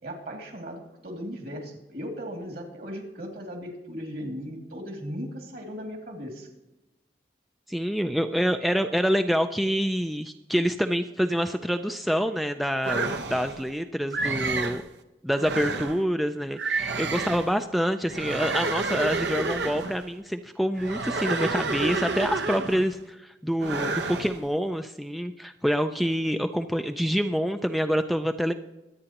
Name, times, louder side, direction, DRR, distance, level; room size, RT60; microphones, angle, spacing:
voice 1, 0.0-6.5, equal, 60° right, 2 dB, 2.4 m, -37 dB
voice 2, 7.7-14.8 15.2-28.5, equal, ahead, 7 dB, 0.3 m, -26 dB
sound 1, 12.8-13.6 14.1-14.8 15.4-16.0 16.6-17.5 18.1-20.0 20.8-22.9 23.6-24.4, right 3 dB, 75° right, 0.8 m, -29 dB
23.0 x 8.7 x 3.0 m, 0.99 s
head